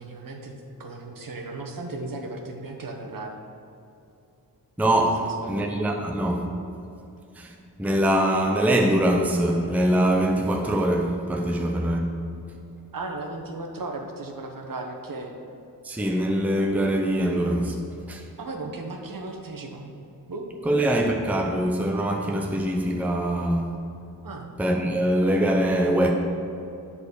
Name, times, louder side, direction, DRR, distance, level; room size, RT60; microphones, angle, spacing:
voice 1, 0.0-3.3 5.2-5.6 12.9-15.3 18.4-19.9 20.3-20.4 24.2-24.5, right 2 dB, 55° right, 2 dB, 1.0 m, -36 dB
voice 2, 4.8-6.5 7.4-7.5 7.8-12.0 15.8-17.8 18.1-18.2 20.6-23.7 24.6-26.1, right 1 dB, 5° right, 2 dB, 0.6 m, -23 dB
9.5 x 4.2 x 6.7 m, 2.7 s
wide cardioid pair, 130°, 41 cm